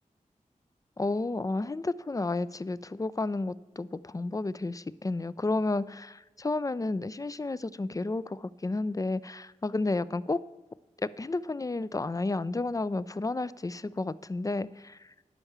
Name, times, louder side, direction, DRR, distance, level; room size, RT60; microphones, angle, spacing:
voice 1, 1.0-10.4 11.0-15.0, left 2 dB, 25° left, 17 dB, 0.3 m, -31 dB
11.0 x 4.7 x 6.9 m, 1.2 s
cardioid pair, 45°, 14 cm